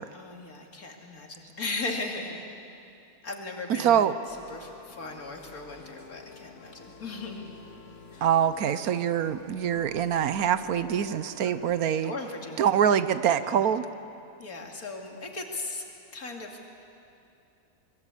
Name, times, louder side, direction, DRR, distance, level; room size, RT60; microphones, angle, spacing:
voice 1, 0.1-2.4 3.2-4.1 4.5-7.5 11.4-11.5 11.9-12.7 13.2-13.6 14.4-15.8 16.1-16.7, left 3 dB, 70° left, 1 dB, 3.0 m, -37 dB
voice 2, 3.8-4.1 8.2-12.1 12.6-13.9, right 9 dB, 70° right, 13 dB, 1.2 m, -24 dB
sound 1, 4.3-11.8, left 5 dB, 50° left, 1.9 m, -50 dB
25.0 x 22.5 x 8.4 m, 2.7 s
omnidirectional pair, 1.6 m